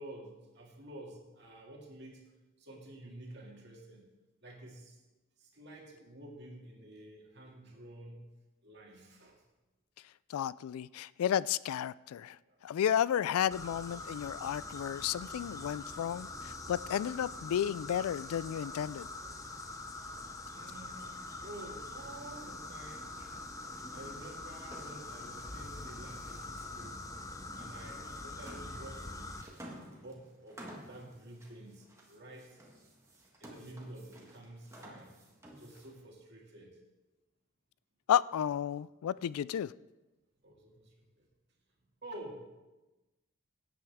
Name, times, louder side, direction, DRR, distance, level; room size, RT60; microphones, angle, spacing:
voice 1, 0.0-2.2 2.6-4.1 4.4-5.0 5.4-8.2 8.6-9.4 12.4-12.6 16.2-16.5 19.6-19.7 20.2-23.1 23.9-27.0 27.6-29.4 29.9-32.6 33.4-35.2 35.5-36.8 40.4-41.2 42.0-42.4, right 1 dB, 50° right, -1 dB, 2.3 m, -50 dB
voice 2, 10.3-12.4 12.6-19.1 38.1-39.7, left 9 dB, 85° left, 18 dB, 0.3 m, -32 dB
sound 1, 13.5-29.4, left 2 dB, 15° left, 0.6 m, -44 dB
sound 2, 17.9-36.0, right 1 dB, 15° right, 1.5 m, -56 dB
17.0 x 8.6 x 3.5 m, 1.1 s
head